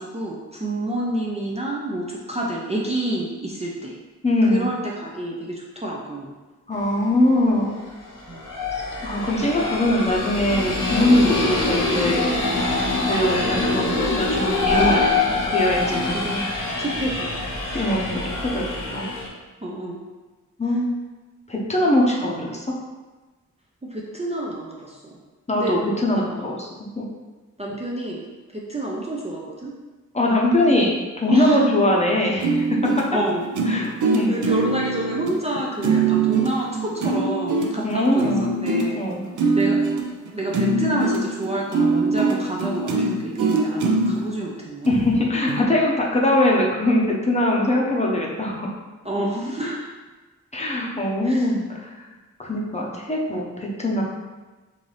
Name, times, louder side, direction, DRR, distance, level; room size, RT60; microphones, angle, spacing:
voice 1, 0.0-4.0 4.4-6.3 8.3-8.4 15.9-16.5 16.8-18.1 19.6-20.0 23.8-25.2 25.5-25.8 26.1-26.4 27.6-29.7 31.3-32.0 33.1-33.4 34.3-39.0 39.5-39.8 40.3-45.0 49.0-49.9 51.2-51.5, right 1 dB, 20° right, -3 dB, 0.4 m, -28 dB
voice 2, 4.2-4.7 6.7-7.7 9.0-12.4 13.0-16.2 17.7-18.2 18.5-18.7 18.9-19.1 20.6-20.9 21.5-22.7 25.5-27.1 30.1-32.7 33.7-34.4 37.8-38.5 38.9-39.2 44.9-48.7 50.5-52.1 52.4-54.0, left 1 dB, 20° left, -3 dB, 0.7 m, -22 dB
sound 1, 6.9-7.0 8.0-19.3, left 3 dB, 85° left, 0.8 m, -24 dB
sound 2, 32.4-44.2 44.8-44.9 45.5-45.6, right 3 dB, 75° right, 0.5 m, -22 dB
3.9 x 2.6 x 3.2 m, 1.2 s
wide cardioid pair, 75°, 31 cm